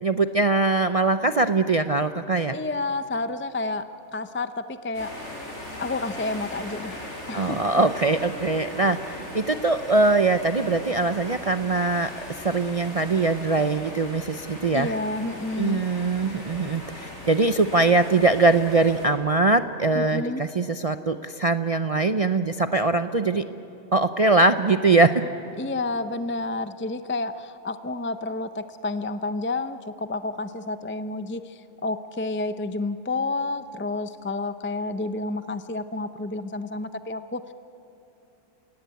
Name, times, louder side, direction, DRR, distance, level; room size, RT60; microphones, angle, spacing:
voice 1, 0.0-2.5 7.3-12.1 12.4-14.9 15.6-23.4 23.9-25.3, right 3 dB, 45° right, 9 dB, 0.5 m, -22 dB
voice 2, 2.5-3.9 4.1-5.1 5.7-7.6 14.7-15.8 19.9-20.4 25.6-37.5, left 2 dB, 20° left, 11 dB, 0.3 m, -30 dB
sound 1, 4.9-19.1, left 1 dB, 60° left, 5.7 m, -39 dB
30.0 x 18.0 x 9.3 m, 3.0 s
omnidirectional pair, 1.4 m